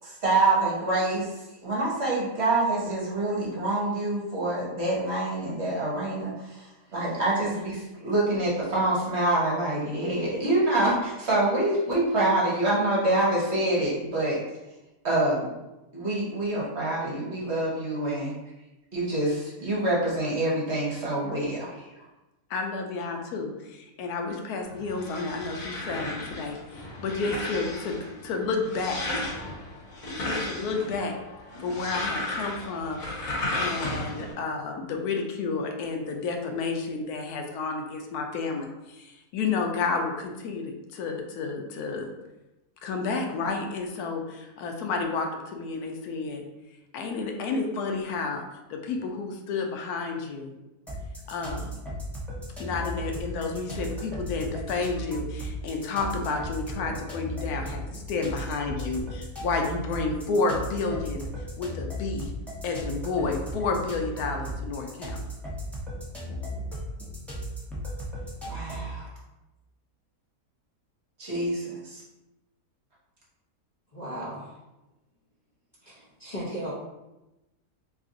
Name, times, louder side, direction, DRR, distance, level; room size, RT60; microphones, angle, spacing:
voice 1, 0.0-1.3 1.6-6.7 6.9-14.4 15.0-15.5 15.9-18.3 18.9-21.9 68.4-69.1 71.2-72.0, right 2 dB, 50° right, -5 dB, 1.2 m, -26 dB
voice 2, 22.5-28.0 28.2-29.3 30.2-31.2 31.6-42.1 42.8-46.4 46.9-48.4 48.7-50.6 51.3-51.7 52.6-61.3 61.6-62.3 62.6-65.2, left 4 dB, 85° left, 3 dB, 1.1 m, -31 dB
sound 1, 24.7-34.3, left 2 dB, 65° left, 1.4 m, -34 dB
sound 2, 50.9-69.0, equal, ahead, 0.3 m, -36 dB
voice 3, 73.9-74.6 75.8-76.7, right 1 dB, 40° left, -8 dB, 0.6 m, -36 dB
3.1 x 2.5 x 3.7 m, 0.98 s
omnidirectional pair, 1.6 m